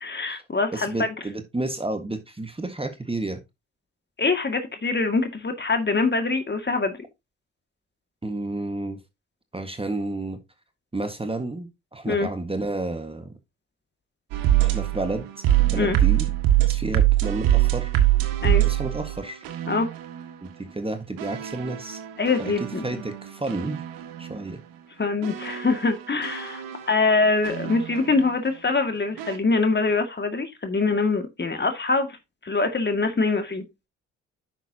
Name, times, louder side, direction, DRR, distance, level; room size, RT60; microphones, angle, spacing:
voice 1, 0.0-1.1 4.2-6.9 12.1-12.3 15.8-16.0 18.4-18.6 19.7-19.9 22.2-22.8 25.0-32.1 32.4-33.6, left 3 dB, 30° left, 2.2 m, -24 dB
voice 2, 0.7-3.4 8.2-9.0 9.5-10.4 10.9-13.3 14.6-16.3 16.6-17.9 18.6-19.4 20.4-22.0 22.4-23.8 24.2-24.6, right 2 dB, 15° right, 1.6 m, -31 dB
sound 1, 14.3-20.3 21.2-24.4 25.2-28.3 29.2-29.4, right 13 dB, 75° right, 1.6 m, -24 dB
10.0 x 6.7 x 2.9 m
hypercardioid pair, 50°, 35 cm